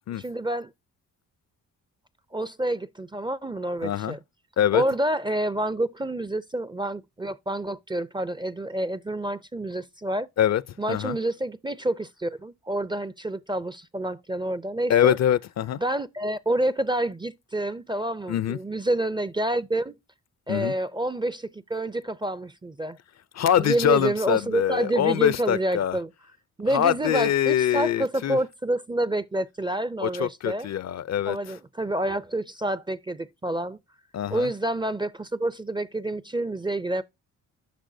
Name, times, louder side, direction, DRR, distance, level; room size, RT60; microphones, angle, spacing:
voice 1, 0.2-0.7 2.3-4.2 4.7-10.3 10.8-15.2 15.8-20.0 20.5-23.0 23.6-26.1 26.6-30.7 31.3-33.8 34.3-37.0, right 1 dB, 15° right, 0.4 m, -28 dB
voice 2, 3.8-4.2 4.6-4.8 10.4-10.6 10.9-11.2 14.9-15.8 18.3-18.6 20.5-20.7 23.3-26.0 26.7-28.4 30.0-31.5 34.1-34.5, left 10 dB, 50° left, 0.4 m, -24 dB
10.0 x 6.0 x 2.6 m
cardioid pair, 85°, 35 cm